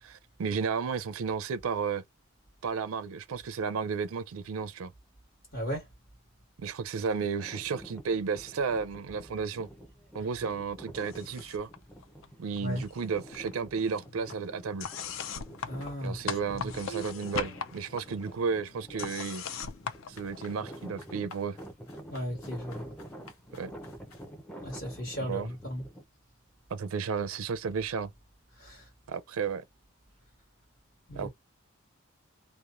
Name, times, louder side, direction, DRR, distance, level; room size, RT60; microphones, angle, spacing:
voice 1, 0.0-2.0 2.6-4.9 6.6-9.7 10.1-11.7 12.4-14.9 16.0-19.4 20.1-21.6 23.6-23.7 25.3-25.5 26.7-28.1 29.1-29.6 31.1-31.3, right 5 dB, 75° right, 0.4 m, -33 dB
voice 2, 5.5-5.9 12.6-12.8 15.7-16.7 22.1-22.9 24.6-25.8 28.5-28.9 31.1-31.3, equal, 45° left, 1.4 m, -36 dB
sound 1, 7.0-26.0, right 1 dB, 5° left, 0.5 m, -48 dB
sound 2, 11.0-11.8 12.0-13.0 13.3-20.9, left 7 dB, 65° left, 0.4 m, -40 dB
sound 3, 15.6-16.5 16.8-17.7 18.0-24.3, right 3 dB, 80° left, 0.8 m, -49 dB
2.9 x 2.1 x 2.4 m
head